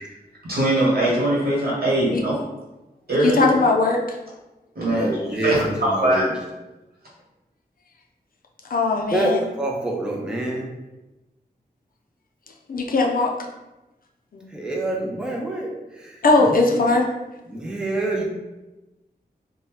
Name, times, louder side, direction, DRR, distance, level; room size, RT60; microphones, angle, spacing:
voice 1, 0.4-2.4 3.1-3.4 4.7-5.2 5.4-6.2, right 1 dB, 70° right, -6 dB, 1.2 m, -21 dB
voice 2, 3.2-4.0 8.7-9.4 12.7-13.3 14.3-14.4 16.2-17.0, left 3 dB, 60° left, 0 dB, 0.4 m, -19 dB
voice 3, 4.8-6.4 9.1-10.7 14.5-16.9 17.5-18.2, right 1 dB, 5° right, -1 dB, 0.4 m, -27 dB
2.7 x 2.2 x 3.1 m, 1.0 s
wide cardioid pair, 90°, 17 cm